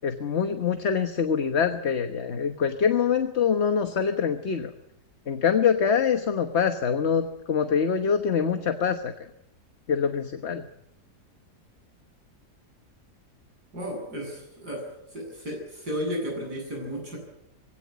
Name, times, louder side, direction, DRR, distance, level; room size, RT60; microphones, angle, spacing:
voice 1, 0.0-4.7 5.3-9.1 9.9-10.6, left 7 dB, 45° left, 7 dB, 1.3 m, -24 dB
voice 2, 13.7-14.9 15.1-17.2, equal, 75° right, 1 dB, 8.5 m, -33 dB
21.5 x 17.0 x 9.3 m, 0.80 s
omnidirectional pair, 1.7 m